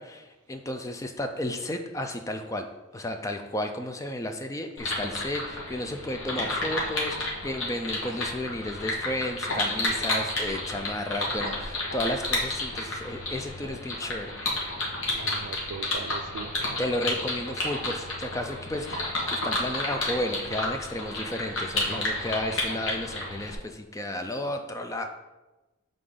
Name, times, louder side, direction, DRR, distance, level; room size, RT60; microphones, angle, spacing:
voice 1, 0.0-2.7 2.9-14.5 16.8-25.1, left 1 dB, 15° left, 5 dB, 0.3 m, -33 dB
sound 1, 4.8-23.5, left 2 dB, 65° left, 1.4 m, -31 dB
voice 2, 15.1-16.7 17.0-17.1, right 5 dB, 85° right, 10 dB, 0.4 m, -40 dB
6.7 x 3.9 x 3.7 m, 1.1 s
head